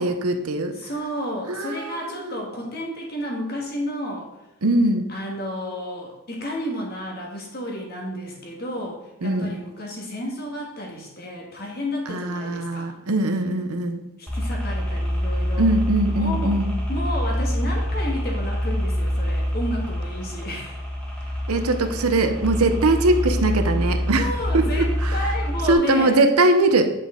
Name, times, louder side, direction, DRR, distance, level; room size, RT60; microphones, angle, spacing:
voice 1, 0.0-0.8 1.5-2.3 4.6-5.1 9.2-9.6 12.1-14.0 15.6-16.7 21.5-24.3 24.5-25.3 25.7-26.9, right 2 dB, 90° right, 7 dB, 0.8 m, -21 dB
voice 2, 0.7-4.3 5.1-12.9 14.2-15.7 16.1-16.6 16.9-20.8 21.9-22.0 24.2-26.2, equal, 45° left, -1 dB, 1.7 m, -31 dB
sound 1, 14.3-25.7, equal, 5° left, 1.7 m, -26 dB
8.5 x 5.3 x 3.8 m, 0.94 s
head